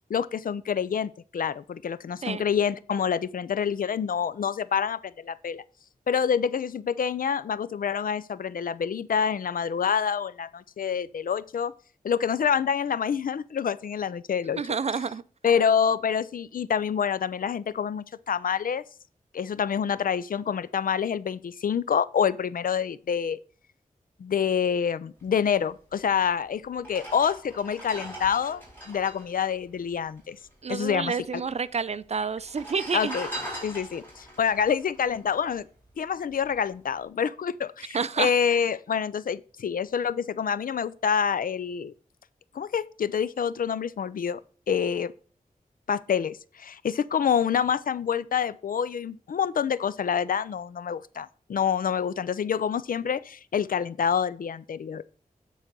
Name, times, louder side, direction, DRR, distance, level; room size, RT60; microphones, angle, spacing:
voice 1, 0.1-5.6 6.1-11.7 12.0-14.6 15.4-18.8 19.3-23.4 24.2-30.4 30.7-31.4 32.9-33.3 33.6-35.7 36.0-41.9 42.5-44.4 44.7-45.1 45.9-55.1, left 7 dB, 75° left, 0.4 m, -27 dB
voice 2, 14.6-15.2 30.6-33.2 37.9-38.3, right 5 dB, 50° right, 0.4 m, -29 dB
sound 1, 26.1-26.2 26.8-30.5 30.7-30.8 31.0-31.7 32.4-35.9 36.3-36.5, right 1 dB, 15° left, 4.0 m, -40 dB
9.0 x 4.1 x 6.0 m
wide cardioid pair, 95°, 15 cm